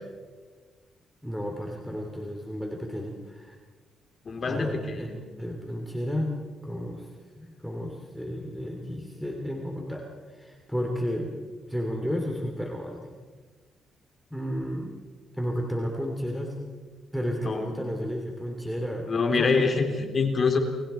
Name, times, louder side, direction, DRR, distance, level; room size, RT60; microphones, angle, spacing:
voice 1, 1.2-3.6 4.5-5.1 5.4-6.3 6.6-7.1 7.4-11.3 11.7-13.1 14.3-14.9 15.4-16.6 17.1-19.5, equal, ahead, 1 dB, 3.1 m, -32 dB
voice 2, 4.2-5.2 17.4-17.7 19.1-20.6, left 4 dB, 40° left, 3 dB, 3.3 m, -25 dB
30.0 x 21.0 x 4.4 m, 1.4 s
cardioid pair, 90°, 0 cm